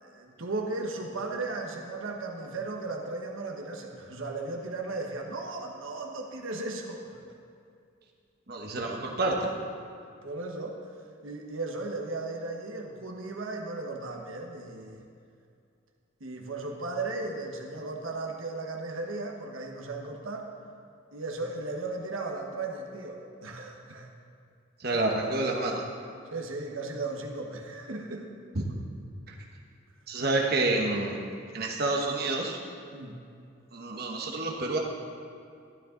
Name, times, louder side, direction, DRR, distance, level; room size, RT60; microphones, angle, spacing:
voice 1, 0.0-7.0 10.2-10.8 11.2-15.0 16.2-20.5 21.1-24.1 24.9-25.1 26.3-28.3 32.9-33.2, right 3 dB, 80° right, 1 dB, 1.2 m, -36 dB
voice 2, 8.5-9.5 24.8-25.8 30.1-31.1 31.5-32.6 33.7-34.8, right 2 dB, 50° right, 0 dB, 1.1 m, -28 dB
12.5 x 12.0 x 3.8 m, 2.4 s
head